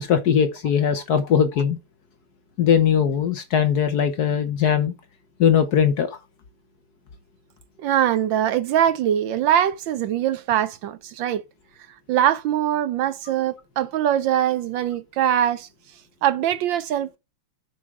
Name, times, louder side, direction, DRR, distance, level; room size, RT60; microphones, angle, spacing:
voice 1, 0.0-1.8 2.6-4.9 5.4-6.1, left 8 dB, 60° left, 1.1 m, -20 dB
voice 2, 7.8-11.4 12.1-15.7 16.2-17.2, right 10 dB, 70° right, 1.2 m, -22 dB
7.6 x 5.5 x 4.7 m
omnidirectional pair, 2.4 m